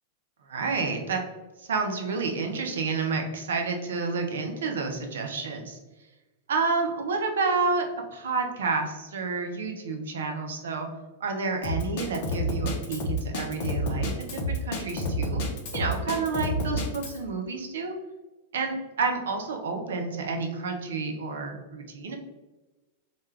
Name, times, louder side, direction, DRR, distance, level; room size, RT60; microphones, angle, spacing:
voice 1, 0.5-1.2 1.6-5.8 6.5-10.9 11.2-15.4 15.7-17.9 18.5-22.2, right 4 dB, 75° right, 3 dB, 0.5 m, -30 dB
Drum kit, 11.6-17.2, equal, 55° left, 0.6 m, -29 dB
2.2 x 2.2 x 3.2 m, 1.1 s
hypercardioid pair, 100°, 0 cm